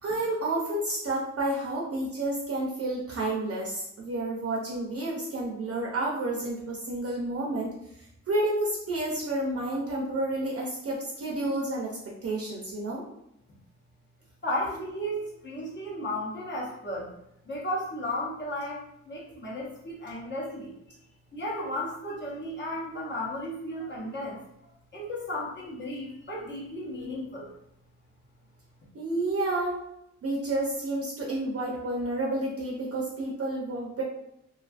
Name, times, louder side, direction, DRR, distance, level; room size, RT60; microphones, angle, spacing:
voice 1, 0.0-7.7 8.3-13.0 28.9-29.8 30.2-34.0, right 2 dB, 50° right, -3 dB, 0.6 m, -30 dB
voice 2, 14.4-17.1 17.4-20.7 21.3-24.4 24.9-27.5, left 1 dB, 35° left, -4 dB, 0.8 m, -34 dB
2.4 x 2.4 x 2.4 m, 0.79 s
wide cardioid pair, 120°, 30 cm